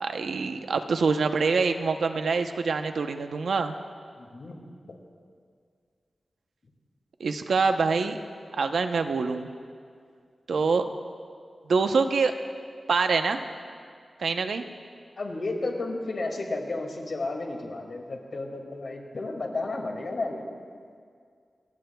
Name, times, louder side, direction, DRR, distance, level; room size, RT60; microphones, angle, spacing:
voice 1, 0.0-3.7 7.2-8.2 8.6-9.5 10.5-10.9 11.7-12.3 12.9-13.4 14.2-14.6, right 4 dB, 85° right, 7 dB, 0.8 m, -25 dB
voice 2, 4.2-4.6 4.9-5.0 15.2-20.5, left 2 dB, 55° left, 1 dB, 2.3 m, -32 dB
28.5 x 17.0 x 2.4 m, 2.1 s
wide cardioid pair, 140°, 0 cm